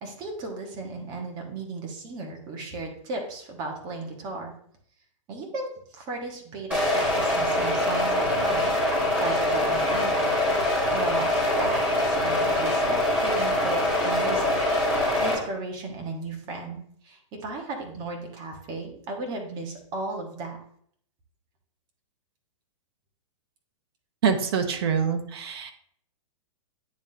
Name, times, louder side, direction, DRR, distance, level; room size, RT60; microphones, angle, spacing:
voice 1, 0.0-4.5 5.3-8.7 9.0-14.5 15.2-20.6, right 3 dB, 25° right, 2 dB, 1.2 m, -35 dB
sound 1, 6.7-15.3, left 1 dB, 10° right, 2.4 m, -24 dB
voice 2, 24.2-25.7, right 6 dB, 50° right, 7 dB, 0.9 m, -25 dB
9.5 x 3.7 x 2.7 m, 0.64 s
hypercardioid pair, 160°, 16 cm